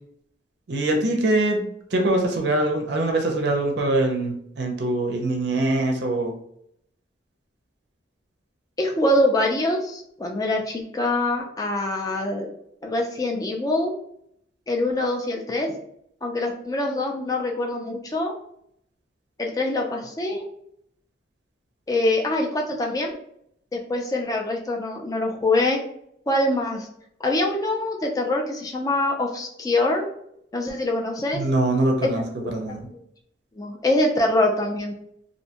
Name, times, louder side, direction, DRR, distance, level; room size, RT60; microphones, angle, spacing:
voice 1, 0.7-1.6 1.9-6.3 31.3-32.9, right 2 dB, 55° right, 2 dB, 0.5 m, -23 dB
voice 2, 8.8-12.5 12.8-13.9 14.7-15.7 16.2-18.3 19.4-20.4 21.9-23.1 23.7-25.8 26.3-26.9 27.2-30.1 30.5-31.4 32.4-32.5 32.9-33.0 33.6-34.9, left 1 dB, 20° left, 1 dB, 0.3 m, -24 dB
2.6 x 2.1 x 2.8 m, 0.71 s
head